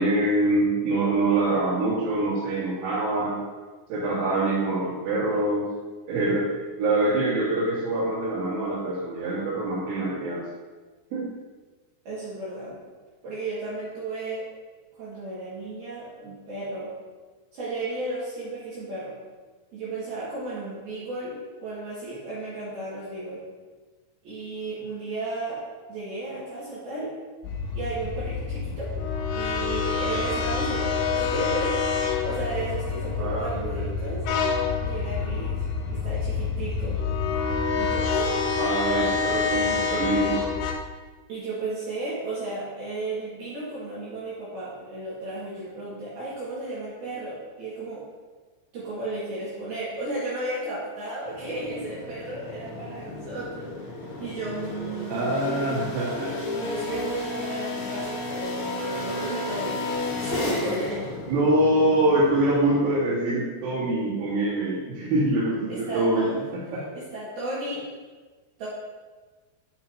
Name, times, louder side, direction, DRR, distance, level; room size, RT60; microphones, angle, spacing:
voice 1, 0.0-3.4 3.9-5.6 6.1-6.5 6.8-10.4 11.1-11.3 33.2-33.8 38.6-40.5 55.1-56.3 60.1-60.3 61.3-66.8, right 2 dB, 75° right, -8 dB, 4.2 m, -24 dB
voice 2, 12.0-12.8 13.2-14.5 14.9-16.9 17.5-19.1 19.7-23.4 24.2-25.6 25.9-27.1 27.7-28.9 29.2-34.3 34.8-37.0 37.8-38.8 41.3-48.0 48.7-55.3 56.6-59.8 60.2-61.1 65.7-66.4 66.9-67.9 68.6-68.7, right 2 dB, 60° right, -10 dB, 3.4 m, -34 dB
sound 1, 27.4-40.7, left 5 dB, 75° left, 2.9 m, -27 dB
sound 2, 51.2-63.1, left 2 dB, 60° left, 2.6 m, -33 dB
9.6 x 8.7 x 2.9 m, 1.3 s
omnidirectional pair, 5.8 m